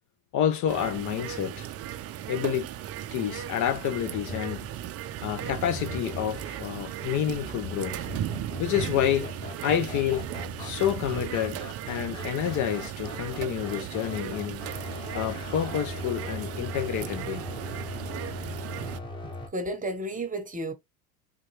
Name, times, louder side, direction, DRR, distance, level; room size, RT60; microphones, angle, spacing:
voice 1, 0.3-1.7 2.3-2.7 3.1-4.7 5.2-8.1 8.6-10.3 10.6-14.7 15.1-17.4, left 10 dB, 45° left, 0.5 m, -29 dB
sound 1, 0.7-19.0, right 11 dB, 35° right, 0.4 m, -36 dB
sound 2, 4.1-19.5, left 2 dB, 10° left, 1.1 m, -40 dB
voice 2, 19.5-20.7, right 1 dB, 20° right, 0.9 m, -32 dB
3.7 x 2.3 x 3.1 m
supercardioid pair, 90°, 42 cm